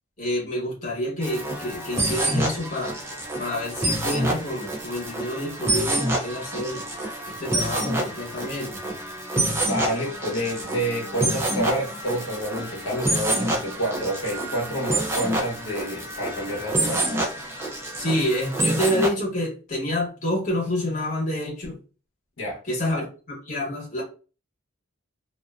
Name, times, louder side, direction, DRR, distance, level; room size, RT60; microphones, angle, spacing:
voice 1, 0.2-3.0 3.4-6.8 7.3-8.8 17.9-21.7 22.7-24.0, left 1 dB, 35° left, 1.0 m, -28 dB
sound 1, 1.2-19.1, right 1 dB, 10° right, 0.4 m, -27 dB
voice 2, 9.7-17.2 22.4-22.6, equal, 70° left, 0.8 m, -29 dB
2.5 x 2.1 x 2.3 m
head